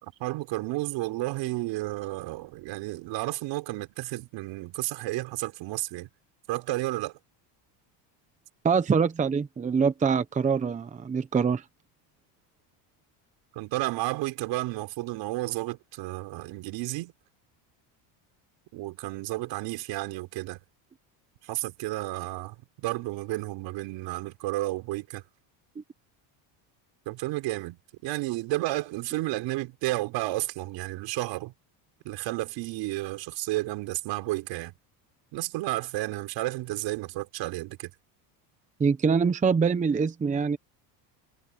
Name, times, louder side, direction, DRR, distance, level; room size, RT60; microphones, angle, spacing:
voice 1, 0.0-6.1 6.5-7.1 13.6-17.1 18.7-20.6 21.4-25.2 27.1-31.5 32.0-34.7 35.3-37.9, right 19 dB, 65° right, 4.0 m, -32 dB
voice 2, 8.6-11.6 38.8-40.6, right 5 dB, 15° right, 0.8 m, -24 dB
cardioid pair, 140°, 47 cm